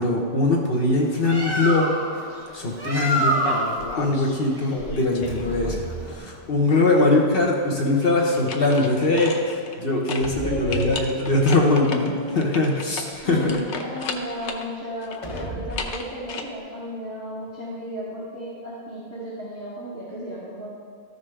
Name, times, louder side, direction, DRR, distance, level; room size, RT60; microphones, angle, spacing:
voice 1, 0.0-2.0 2.5-3.4 4.0-5.8 6.1-13.6, left 2 dB, 60° left, -1 dB, 1.2 m, -21 dB
Bird, 1.0-6.2, right 1 dB, 20° right, 1.2 m, -28 dB
sound 1, 1.2-1.9 5.2-6.9 10.2-11.9 15.2-16.1, equal, 35° left, 0.8 m, -36 dB
sound 2, 3.4-4.3 4.7-6.0 8.2-9.8 10.1-10.3 10.7-14.7 15.0-16.4, left 4 dB, 85° left, 1.0 m, -34 dB
voice 2, 10.4-11.4 11.7-12.4 13.2-20.7, equal, 15° left, -12 dB, 2.0 m, -34 dB
13.5 x 5.4 x 3.3 m, 2.2 s
omnidirectional pair, 1.1 m